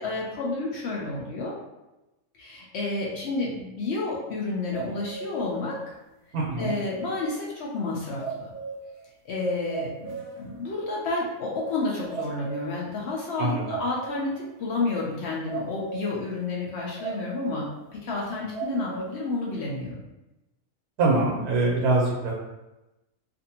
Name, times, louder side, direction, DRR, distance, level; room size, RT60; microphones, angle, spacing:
voice 1, 0.0-1.5 2.3-5.9 6.6-8.5 9.2-20.0, left 3 dB, 70° left, -3 dB, 0.6 m, -30 dB
sound 1, 4.7-5.5 5.8-5.9 6.6-7.4 7.8-7.9 8.2-9.0 9.3-9.4 9.7-10.5 10.8-10.9 11.7-11.8 12.1-12.9 13.6-14.4 15.5-16.2 17.0-17.7 18.1-18.2 18.5-19.2 19.7-19.8, right 5 dB, 40° right, 1.0 m, -36 dB
voice 2, 6.3-6.7 13.4-13.6 21.0-22.3, right 2 dB, 80° right, -4 dB, 1.1 m, -23 dB
2.6 x 2.5 x 2.7 m, 0.99 s
omnidirectional pair, 1.6 m